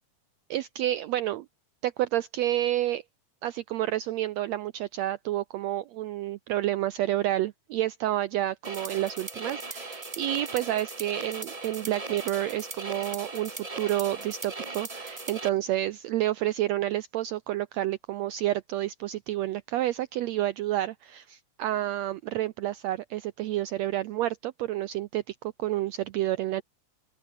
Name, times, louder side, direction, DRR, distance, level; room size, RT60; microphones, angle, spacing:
voice 1, 0.5-1.5 1.8-3.0 3.4-26.6, right 14 dB, 80° right, 1.6 m, -29 dB
sound 1, 8.6-15.5, right 3 dB, 35° right, 0.6 m, -38 dB
open air
omnidirectional pair, 3.7 m